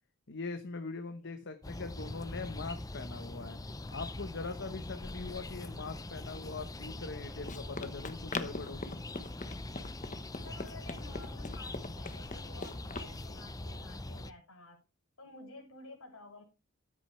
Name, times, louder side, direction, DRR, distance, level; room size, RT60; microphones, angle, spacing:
voice 1, 0.3-3.6 3.9-8.9, left 3 dB, 55° left, 8 dB, 1.1 m, -42 dB
sound 1, 1.6-14.3, left 2 dB, 15° left, 0.6 m, -43 dB
Run, 6.9-13.1, left 3 dB, 35° left, 1.1 m, -43 dB
voice 2, 10.4-14.8 15.2-16.4, left 2 dB, 70° left, 1 dB, 6.5 m, -52 dB
13.0 x 10.0 x 3.3 m, 0.27 s
head